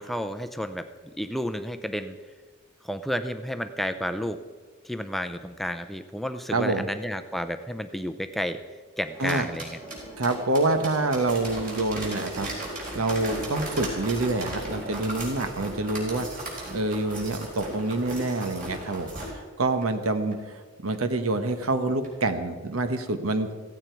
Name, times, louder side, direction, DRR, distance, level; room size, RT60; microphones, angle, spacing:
voice 1, 0.0-2.2 2.8-4.4 4.8-8.6 9.0-9.8, equal, ahead, 9 dB, 0.5 m, -31 dB
voice 2, 6.5-6.9 9.2-9.5 10.2-12.5 12.9-16.3 16.7-19.3 19.6-23.5, right 2 dB, 90° right, 8 dB, 1.2 m, -27 dB
sound 1, 9.0-19.3 19.8-19.9 20.3-20.4 20.9-21.0 21.5-21.6 22.0-22.1, right 1 dB, 40° right, 4.6 m, -36 dB
16.0 x 15.5 x 4.6 m, 1.4 s
head